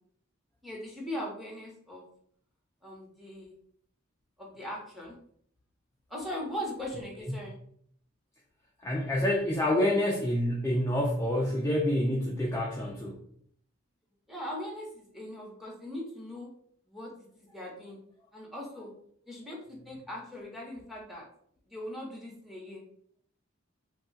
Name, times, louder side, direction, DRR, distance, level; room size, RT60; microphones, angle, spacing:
voice 1, 0.6-2.1 2.8-3.5 4.4-5.1 6.1-7.6 14.3-16.5 16.9-18.0 18.3-18.9 19.3-21.3 21.7-22.8, equal, ahead, -3 dB, 0.8 m, -40 dB
voice 2, 8.8-13.2, left 1 dB, 15° left, -2 dB, 0.3 m, -27 dB
2.2 x 2.2 x 3.8 m, 0.63 s
head